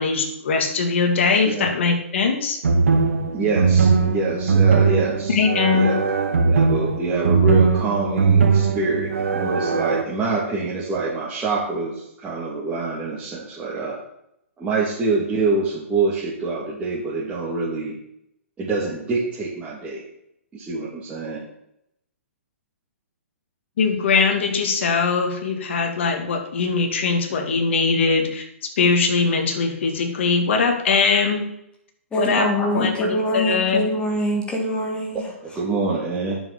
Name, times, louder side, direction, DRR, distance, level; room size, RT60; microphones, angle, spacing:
voice 1, 0.0-2.6 5.3-6.0 23.8-28.4 28.8-31.5 32.2-33.9, left 4 dB, 55° left, 3 dB, 2.7 m, -21 dB
sound 1, 2.6-10.0, right 5 dB, 70° right, 1.4 m, -19 dB
voice 2, 3.3-5.4 5.7-6.0 6.3-14.0 14.6-18.0 18.6-20.0 20.5-21.5 35.1-36.4, right 3 dB, 15° right, -7 dB, 3.0 m, -26 dB
voice 3, 32.1-35.2, equal, 15° left, 0 dB, 2.6 m, -24 dB
9.7 x 7.2 x 7.0 m, 0.78 s
figure-of-eight pair, 125°, 8 cm